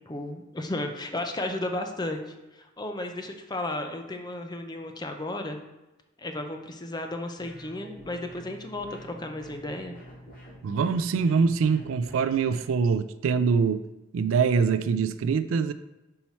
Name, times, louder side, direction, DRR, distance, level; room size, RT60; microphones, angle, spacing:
voice 1, 0.1-5.6 6.2-9.9, left 1 dB, 20° left, 5 dB, 0.6 m, -34 dB
sound 1, 7.4-12.7, equal, 40° left, 2.0 m, -47 dB
voice 2, 10.6-13.8 14.1-15.7, right 5 dB, 75° right, 12 dB, 0.3 m, -24 dB
5.6 x 4.3 x 4.4 m, 0.99 s
head